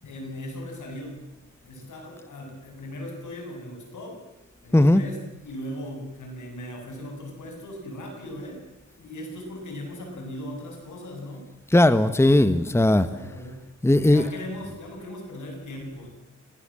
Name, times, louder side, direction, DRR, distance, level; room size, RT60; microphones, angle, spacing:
voice 1, 0.0-1.2 1.6-4.2 4.6-8.6 9.0-11.5 13.0-13.6 13.9-16.2, left 1 dB, 80° left, 2 dB, 7.9 m, -38 dB
voice 2, 11.7-13.1 13.8-14.2, left 1 dB, 10° left, 13 dB, 1.2 m, -17 dB
24.5 x 19.5 x 7.7 m, 0.92 s
cardioid pair, 75°, 30 cm